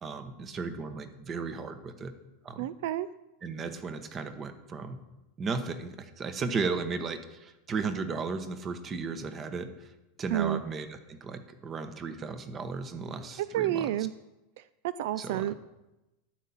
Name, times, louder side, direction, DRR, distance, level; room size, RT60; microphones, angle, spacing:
voice 1, 0.0-2.1 2.4-2.7 3.4-5.0 5.4-9.9 10.2-13.9 15.2-15.5, right 4 dB, 25° right, 10 dB, 1.0 m, -35 dB
voice 2, 2.6-3.1 10.3-10.6 13.4-14.1 14.6-15.5, right 12 dB, 65° right, 16 dB, 0.4 m, -30 dB
12.0 x 5.6 x 8.7 m, 0.98 s
supercardioid pair, 150°, 0 cm